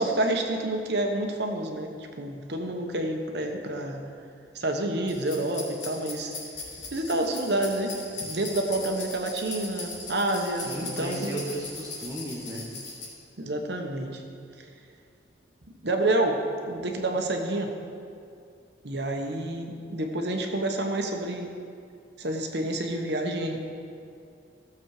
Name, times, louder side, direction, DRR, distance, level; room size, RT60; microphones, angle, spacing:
voice 1, 0.0-4.0 4.5-6.3 6.9-7.9 8.2-11.4 13.4-14.2 14.6-14.7 15.8-16.4 16.7-17.7 18.8-21.5 22.2-23.6, right 1 dB, 60° right, 3 dB, 1.2 m, -28 dB
sound 1, 5.1-13.0, left 3 dB, 75° left, 3.2 m, -39 dB
voice 2, 10.7-12.6, right 1 dB, 15° right, -3 dB, 1.3 m, -35 dB
15.0 x 7.3 x 4.9 m, 2.4 s
head